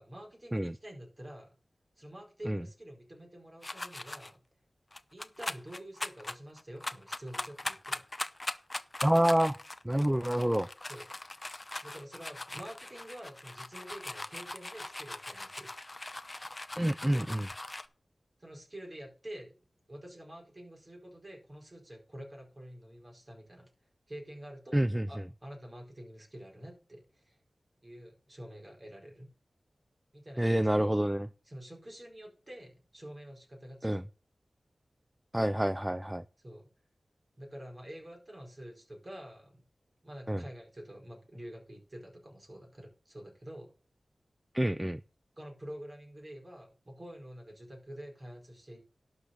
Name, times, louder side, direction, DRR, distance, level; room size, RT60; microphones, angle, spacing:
voice 1, 0.0-1.5 2.0-4.4 5.1-8.0 10.9-11.0 11.8-15.7 18.4-19.5 19.9-23.7 24.1-24.8 25.1-27.4 27.8-29.3 30.1-30.9 31.5-34.0 36.4-36.7 37.4-39.6 40.0-43.7 45.4-48.8, right 1 dB, 30° right, 4.6 m, -48 dB
sound 1, 3.6-4.3 4.9-17.9, left 2 dB, 25° left, 0.8 m, -41 dB
voice 2, 9.0-9.6 9.8-10.7 16.8-17.5 24.7-25.2 30.4-31.3 33.8-34.0 35.3-36.2 40.3-40.4 44.5-45.0, right 1 dB, 10° right, 0.4 m, -28 dB
12.0 x 5.0 x 6.8 m
wide cardioid pair, 90°, 0 cm